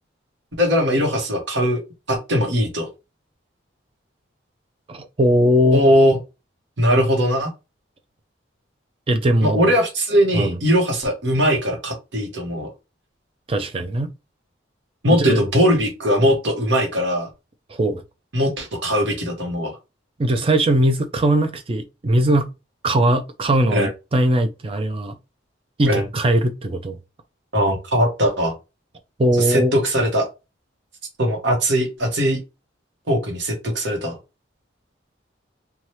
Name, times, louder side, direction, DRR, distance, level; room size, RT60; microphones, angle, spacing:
voice 1, 0.6-1.8 2.1-2.9 5.7-6.2 6.8-7.5 9.4-12.7 15.0-17.3 18.3-19.8 23.7-23.9 25.9-26.1 27.5-28.5 29.5-30.3 31.2-32.4 33.1-34.2, equal, 65° right, 1.1 m, -20 dB
voice 2, 4.9-5.8 9.1-9.7 10.3-10.6 13.5-14.1 15.1-15.4 17.7-18.0 20.2-22.5 22.8-25.2 25.8-27.0 29.2-29.7, right 1 dB, 30° right, 0.4 m, -20 dB
2.8 x 2.3 x 3.1 m
head